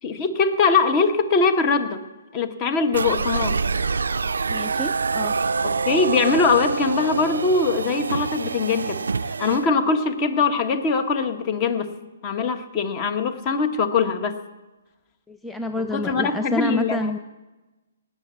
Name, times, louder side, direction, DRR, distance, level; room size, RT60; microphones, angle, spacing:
voice 1, 0.0-2.0 2.3-3.5 5.6-9.0 9.4-11.9 12.2-14.4 15.9-17.1, left 4 dB, 30° left, 9 dB, 1.4 m, -22 dB
sound 1, 2.9-9.7, right 4 dB, 85° right, 0.4 m, -26 dB
voice 2, 4.5-5.4 15.3-17.2, left 1 dB, 5° left, 7 dB, 0.4 m, -28 dB
18.5 x 7.2 x 8.4 m, 1.1 s
hypercardioid pair, 145°, 0 cm